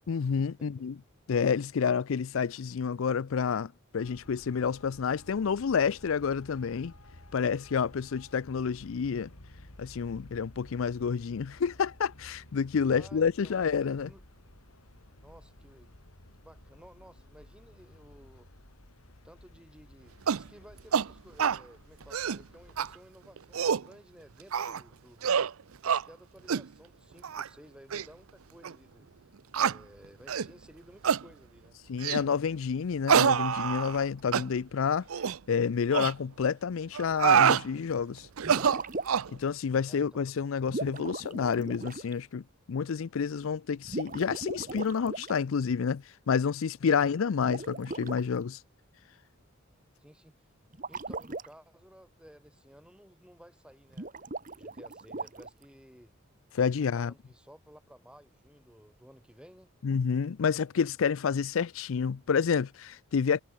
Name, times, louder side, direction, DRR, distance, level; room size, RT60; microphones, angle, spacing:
voice 1, 0.1-1.0 1.3-6.9 7.3-9.3 9.8-14.1 31.9-35.1 35.5-38.3 39.3-48.6 56.5-57.1 59.8-63.4, left 6 dB, 70° left, 0.4 m, -29 dB
voice 2, 0.6-0.9 12.9-14.2 15.2-16.0 16.3-18.5 19.2-25.5 25.8-29.1 29.6-31.8 39.7-40.2 46.9-47.1 50.0-50.5 50.9-54.1 54.5-56.1 56.8-59.7, equal, 5° right, 5.2 m, -55 dB
Traffic noise roadway noise, 4.0-22.9, left 1 dB, 85° left, 3.7 m, -54 dB
sound 1, 20.3-20.5 20.9-21.1 21.4-21.6 22.0-22.4 22.8-22.9 23.4-23.9 24.5-24.8 25.2-25.5 25.8-26.0 26.5-26.7 27.2-27.5 27.9-28.0 28.6-28.7 29.5-29.8 30.3-30.5 31.0-31.2 32.0-32.3 33.1-34.0 34.3-34.5 35.1-35.4 35.9-36.1 36.9-37.6 38.4-39.3, right 7 dB, 80° right, 0.6 m, -26 dB
sound 2, 38.4-39.4 40.7-42.1 43.8-45.4 47.4-48.2 50.7-51.5 53.9-55.6, right 3 dB, 35° right, 1.2 m, -38 dB
head